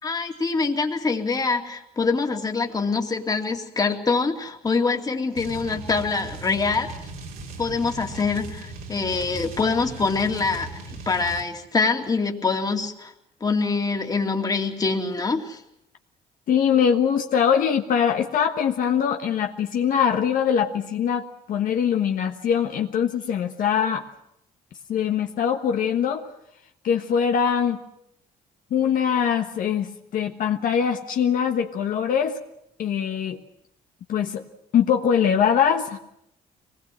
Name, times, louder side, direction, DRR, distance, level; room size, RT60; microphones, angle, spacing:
voice 1, 0.0-6.9 7.6-13.1 13.4-15.6, left 4 dB, 25° left, 3 dB, 2.5 m, -25 dB
sound 1, 5.4-11.5, right 3 dB, 75° right, 3.3 m, -38 dB
voice 2, 16.5-24.0 24.9-26.3 26.8-27.8 28.7-32.4 32.8-33.4 34.1-34.4 34.7-36.0, left 8 dB, 65° left, 4 dB, 1.3 m, -22 dB
24.0 x 20.0 x 7.7 m, 0.78 s
cardioid pair, 120°, 15 cm